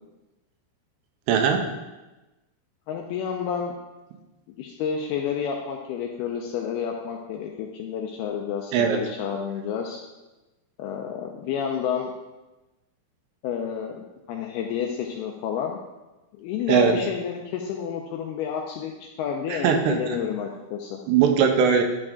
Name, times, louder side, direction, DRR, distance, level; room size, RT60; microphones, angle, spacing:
voice 1, 1.3-1.6 8.7-9.0 16.7-16.9 19.5-20.0 21.1-21.8, right 7 dB, 80° right, 5 dB, 2.8 m, -19 dB
voice 2, 2.9-3.7 4.6-10.0 10.8-12.1 13.4-15.8 16.4-21.0, left 7 dB, 85° left, 2 dB, 2.3 m, -30 dB
10.5 x 4.9 x 3.6 m, 1.1 s
omnidirectional pair, 5.0 m